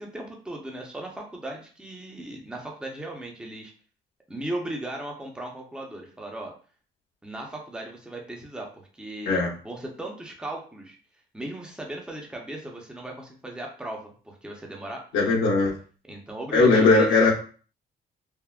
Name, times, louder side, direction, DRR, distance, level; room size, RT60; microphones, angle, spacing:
voice 1, 0.0-3.7 4.3-6.5 7.2-11.0 11.3-15.4 16.1-17.3, right 1 dB, 5° right, 0 dB, 0.7 m, -37 dB
voice 2, 15.1-15.7 16.5-17.3, left 3 dB, 85° left, -4 dB, 0.9 m, -19 dB
3.5 x 2.1 x 2.3 m, 0.39 s
cardioid pair, 90°, 20 cm